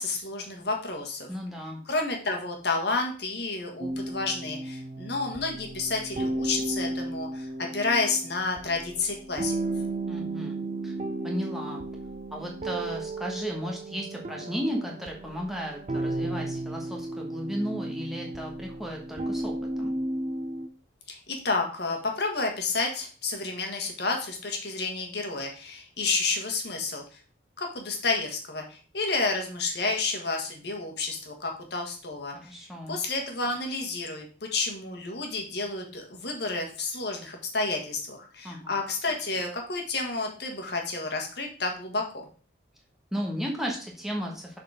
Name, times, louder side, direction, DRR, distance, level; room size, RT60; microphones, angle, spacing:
voice 1, 0.0-1.3 1.9-9.6 21.1-27.0 27.6-34.3 34.5-42.3, left 3 dB, 55° left, 2 dB, 1.6 m, -30 dB
voice 2, 1.3-1.8 10.1-10.9 11.2-11.8 12.3-19.9 32.4-33.0 38.4-38.8 43.1-44.6, equal, ahead, -1 dB, 1.1 m, -34 dB
sound 1, 3.8-20.7, right 2 dB, 35° right, 0.5 m, -34 dB
6.6 x 4.3 x 4.9 m, 0.39 s
head